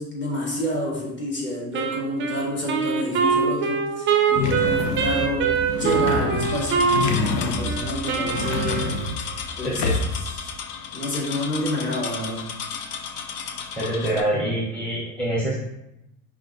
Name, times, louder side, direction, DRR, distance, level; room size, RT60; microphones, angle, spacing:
voice 1, 0.0-8.9 9.6-9.8 10.4-10.5 10.9-12.5, left 1 dB, 25° left, -3 dB, 1.5 m, -29 dB
Wind instrument woodwind instrument, 1.7-9.2, right 6 dB, 25° right, 0.4 m, -24 dB
sound 1, 4.4-10.4, left 3 dB, 90° left, 0.8 m, -28 dB
sound 2, 6.4-14.2, left 6 dB, 55° left, 0.7 m, -34 dB
voice 2, 13.8-15.5, right 1 dB, ahead, -6 dB, 0.9 m, -25 dB
5.5 x 2.5 x 3.8 m, 0.87 s
supercardioid pair, 120°, 46 cm